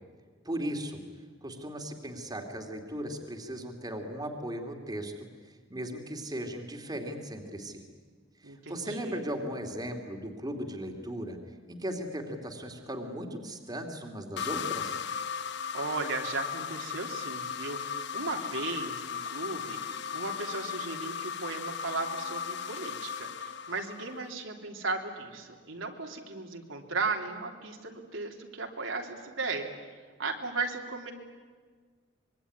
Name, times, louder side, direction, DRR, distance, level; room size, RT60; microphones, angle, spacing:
voice 1, 0.4-1.0 1.4-5.1 5.4-7.8 8.4-11.4 11.7-15.0, equal, 20° right, 3 dB, 2.7 m, -37 dB
voice 2, 8.4-9.2 15.7-29.9 30.2-31.1, right 3 dB, 75° right, 2 dB, 3.3 m, -36 dB
sound 1, 14.4-24.3, left 7 dB, 60° left, 0.9 m, -36 dB
25.0 x 23.0 x 9.9 m, 1.5 s
head